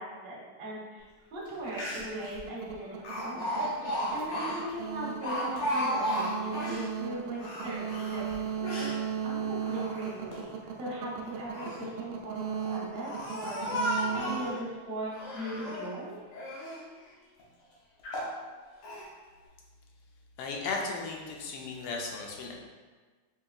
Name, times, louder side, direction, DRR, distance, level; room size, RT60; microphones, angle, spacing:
voice 1, 0.0-8.9 9.2-10.5 10.8-13.7 14.1-16.2, right 1 dB, 45° right, -5 dB, 0.8 m, -39 dB
Speech, 1.5-1.6 1.7-2.3 3.0-6.9 7.3-9.0 9.5-10.4 11.3-11.9 12.6-14.6 15.1-15.9 16.3-16.8 17.4-17.5 18.0-18.4 18.8-19.1, equal, 65° left, 1.3 m, -34 dB
sound 1, 1.5-15.4, right 7 dB, 75° right, 1.3 m, -37 dB
voice 2, 20.4-22.5, left 4 dB, 80° left, 0 dB, 1.5 m, -35 dB
5.6 x 2.8 x 2.3 m, 1.4 s
omnidirectional pair, 2.4 m